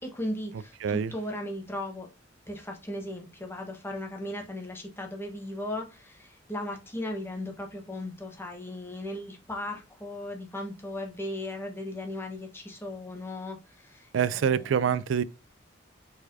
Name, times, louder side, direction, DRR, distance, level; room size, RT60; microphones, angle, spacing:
voice 1, 0.0-2.1 2.5-14.8, left 1 dB, 10° left, 1.1 m, -37 dB
voice 2, 0.8-1.1 14.1-15.2, right 7 dB, 75° right, 0.3 m, -25 dB
4.6 x 4.2 x 2.7 m
head